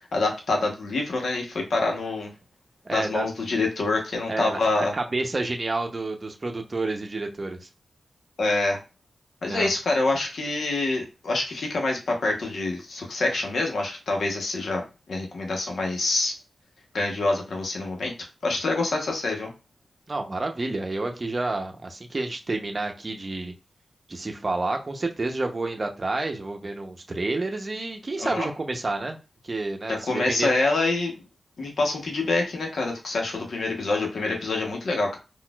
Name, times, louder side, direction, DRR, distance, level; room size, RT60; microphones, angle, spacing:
voice 1, 0.1-2.3 2.9-4.9 8.4-8.8 9.4-14.8 15.1-16.3 16.9-18.1 18.4-19.5 28.2-28.5 29.9-31.1 31.6-35.2, left 2 dB, 80° left, 1 dB, 0.9 m, -26 dB
voice 2, 2.8-3.3 4.3-7.7 9.4-9.7 20.1-23.5 24.1-29.2 29.4-30.5, right 2 dB, 35° right, 3 dB, 0.7 m, -29 dB
4.0 x 2.4 x 2.3 m, 0.29 s
wide cardioid pair, 75°, 0 cm